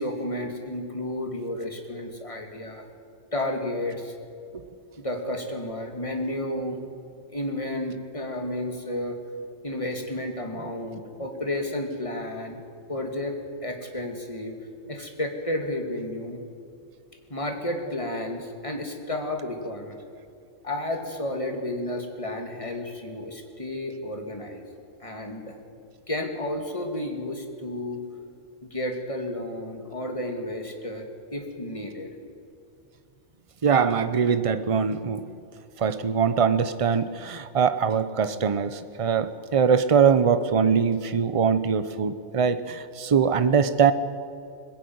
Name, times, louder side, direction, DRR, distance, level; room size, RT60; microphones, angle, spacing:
voice 1, 0.0-2.9 3.3-4.1 5.0-6.8 7.3-9.2 9.6-12.6 12.9-13.4 13.6-14.6 14.9-16.4 17.3-20.0 20.6-24.6 25.0-25.5 26.1-28.0 28.6-31.1 31.3-32.1, left 1 dB, 25° left, 3 dB, 2.4 m, -32 dB
voice 2, 33.6-35.2 35.8-43.9, right 6 dB, 30° right, 12 dB, 0.8 m, -22 dB
20.5 x 16.0 x 9.5 m, 2.4 s
omnidirectional pair, 1.4 m